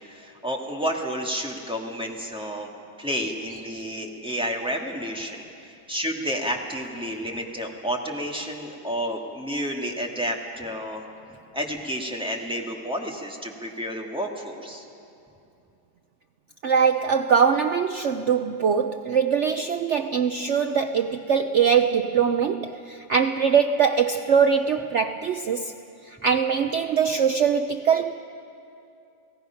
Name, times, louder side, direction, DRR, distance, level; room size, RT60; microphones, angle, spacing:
voice 1, 0.0-2.7 3.0-11.0 11.5-14.9, equal, 5° right, 0 dB, 1.7 m, -30 dB
voice 2, 16.6-25.7 26.2-28.1, right 6 dB, 75° right, 8 dB, 0.6 m, -22 dB
30.0 x 17.5 x 5.7 m, 2.7 s
omnidirectional pair, 1.9 m